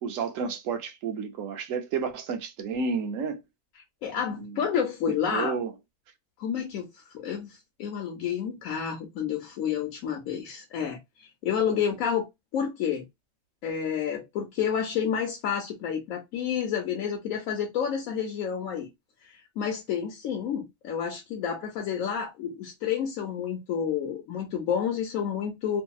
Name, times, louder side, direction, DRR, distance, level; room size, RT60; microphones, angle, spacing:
voice 1, 0.0-3.4 4.4-4.6 5.3-5.7, right 5 dB, 75° right, 1.0 m, -31 dB
voice 2, 4.0-5.6 6.4-12.3 12.5-13.0 13.6-18.9 19.2-25.8, left 8 dB, 90° left, 1.1 m, -30 dB
2.7 x 2.6 x 2.3 m
omnidirectional pair, 1.4 m